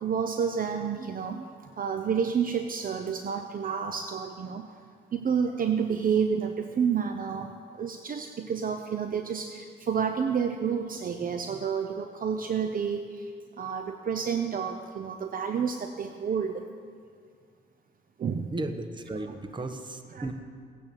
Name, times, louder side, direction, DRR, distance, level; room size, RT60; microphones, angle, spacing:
voice 1, 0.0-1.5 1.8-4.7 5.1-13.3 13.6-16.6 18.2-18.5 20.2-20.3, right 7 dB, 45° right, 6 dB, 0.8 m, -29 dB
voice 2, 18.5-20.3, right 2 dB, 25° right, 7 dB, 1.3 m, -35 dB
17.0 x 9.1 x 7.0 m, 2.1 s
cardioid pair, 90°, 20 cm